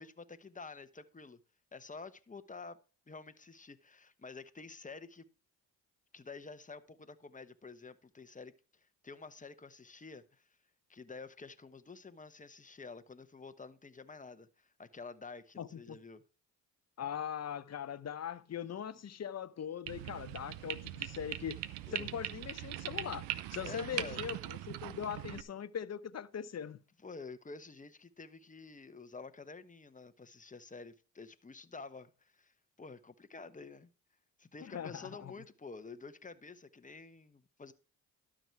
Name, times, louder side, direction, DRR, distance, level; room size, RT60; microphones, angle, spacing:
voice 1, 0.0-1.4 1.7-2.8 3.1-5.2 6.1-8.5 9.0-10.5 10.9-16.2 21.9-22.1 23.6-24.2 27.0-33.9 34.4-37.7, left 4 dB, 20° left, 1.1 m, -49 dB
voice 2, 15.6-16.0 17.0-21.6 21.9-26.8 34.6-35.3, left 8 dB, 40° left, 0.8 m, -41 dB
sound 1, 19.9-25.4, right 14 dB, 90° right, 0.7 m, -41 dB
12.0 x 6.3 x 4.5 m
supercardioid pair, 60°, 41 cm